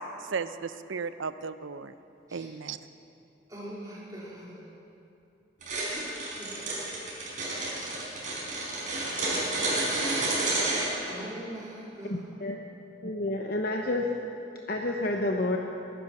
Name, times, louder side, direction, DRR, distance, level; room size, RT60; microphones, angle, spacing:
voice 1, 0.3-1.9 2.3-2.8, right 5 dB, 85° right, 13 dB, 0.6 m, -35 dB
voice 2, 3.5-4.6 5.9-6.0 6.4-6.5 9.3-9.9 11.1-12.2, right 1 dB, 20° right, -6 dB, 3.4 m, -42 dB
sound 1, 5.6-10.9, right 2 dB, 40° right, 4.8 m, -30 dB
voice 3, 12.1-12.6 13.0-14.1 14.7-15.6, left 2 dB, 50° left, 2 dB, 0.9 m, -29 dB
22.5 x 10.5 x 6.0 m, 2.7 s
head